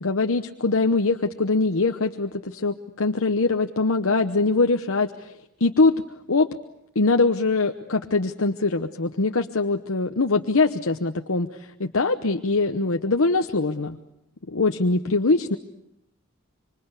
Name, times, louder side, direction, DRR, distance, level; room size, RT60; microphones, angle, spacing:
voice 1, 0.0-5.9 6.3-6.5 6.9-14.0 14.5-15.6, left 3 dB, 70° left, 6 dB, 1.0 m, -22 dB
26.5 x 25.0 x 8.2 m, 0.82 s
head